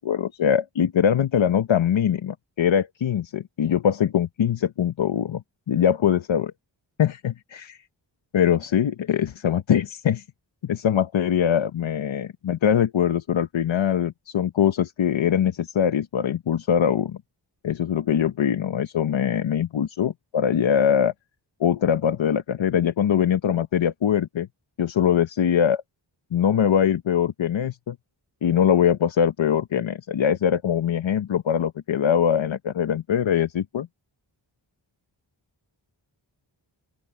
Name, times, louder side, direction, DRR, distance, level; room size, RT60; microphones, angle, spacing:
voice 1, 0.0-6.5 7.0-7.8 8.3-10.2 10.6-17.2 17.6-21.1 21.6-24.5 24.8-25.8 26.3-28.0 28.4-33.9, left 8 dB, 85° left, 0.8 m, -22 dB
open air
wide cardioid pair, 65°, 45 cm